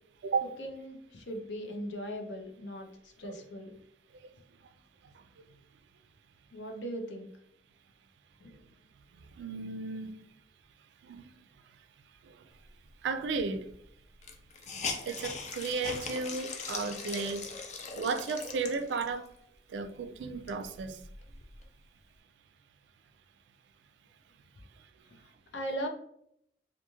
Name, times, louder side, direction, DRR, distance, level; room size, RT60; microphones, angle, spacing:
voice 1, 0.6-3.7 6.5-7.3 8.4-8.6 25.5-25.9, equal, 90° left, 0.6 m, -39 dB
voice 2, 9.4-10.2 11.0-11.3 13.0-13.7 15.1-17.5 17.9-19.3 19.7-21.0, right 4 dB, 70° right, 0.3 m, -34 dB
Hiss, 13.4-13.5 13.7-13.8 14.2-19.3 19.8-19.9 20.3-21.7, left 4 dB, 40° left, 0.4 m, -40 dB
2.4 x 2.3 x 2.9 m
head